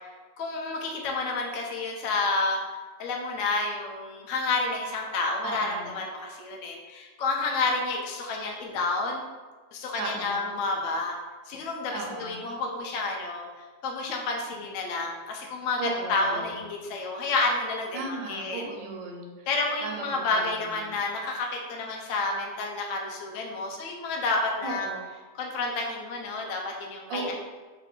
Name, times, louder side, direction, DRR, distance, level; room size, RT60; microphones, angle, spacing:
voice 1, 0.4-9.2 9.7-11.1 11.5-13.4 13.8-18.0 18.3-18.6 19.5-24.9 25.4-27.3, left 3 dB, 70° left, 0 dB, 0.7 m, -30 dB
voice 2, 5.4-5.9 10.0-10.5 11.9-12.5 15.8-16.6 17.9-19.5 19.8-21.0 24.6-25.0 27.1-27.3, right 3 dB, 80° right, 1 dB, 1.3 m, -36 dB
3.2 x 2.5 x 3.6 m, 1.3 s
omnidirectional pair, 2.0 m